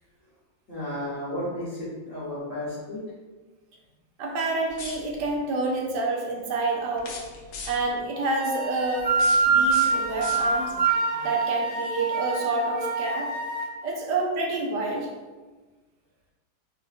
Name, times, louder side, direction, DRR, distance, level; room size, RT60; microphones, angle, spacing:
voice 1, 0.7-3.0, left 1 dB, 50° left, -11 dB, 1.2 m, -33 dB
voice 2, 4.2-7.1 7.7-9.1 9.5-10.7 11.2-13.3 13.8-15.1, right 2 dB, 70° right, 0 dB, 1.1 m, -28 dB
sound 1, 4.7-5.4 6.9-8.0 9.0-10.8, left 4 dB, 80° left, 0.8 m, -40 dB
sound 2, 8.4-13.7, right 4 dB, 45° right, 0.7 m, -25 dB
4.5 x 2.4 x 2.4 m, 1.3 s
omnidirectional pair, 2.1 m